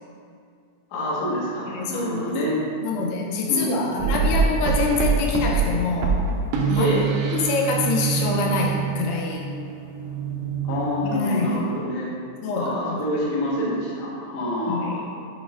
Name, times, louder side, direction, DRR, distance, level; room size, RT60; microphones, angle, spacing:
voice 1, 0.9-2.6 3.0-3.1 3.5-4.3 6.8-7.1 10.6-12.1 12.5-15.0, equal, 60° left, -6 dB, 1.7 m, -27 dB
voice 2, 1.7-2.4 2.8-6.2 6.7-6.9 7.3-9.5 11.1-11.6 12.4-13.0 14.7-15.0, left 4 dB, 80° left, -1 dB, 2.5 m, -25 dB
sound 1, 4.0-11.8, right 5 dB, 85° right, 2.1 m, -25 dB
8.5 x 5.2 x 2.5 m, 2.3 s
omnidirectional pair, 4.8 m